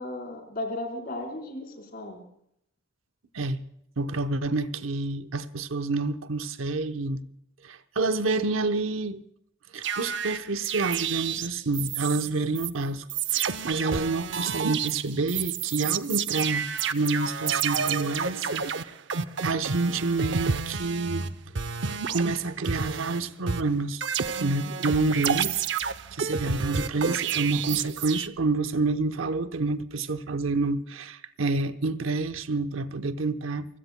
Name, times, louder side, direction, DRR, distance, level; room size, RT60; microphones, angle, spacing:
voice 1, 0.0-2.3, left 1 dB, 45° left, 4.3 m, -35 dB
voice 2, 4.0-7.2 7.6-9.2 9.7-13.0 13.3-18.6 19.4-21.3 22.1-24.0 24.4-25.7 26.1-33.7, right 3 dB, 85° right, 0.9 m, -28 dB
sound 1, 9.8-12.3 12.5-12.7 13.1-21.3 21.5-23.2 23.5-28.3, right 7 dB, 60° right, 0.6 m, -30 dB
29.5 x 16.5 x 2.2 m
head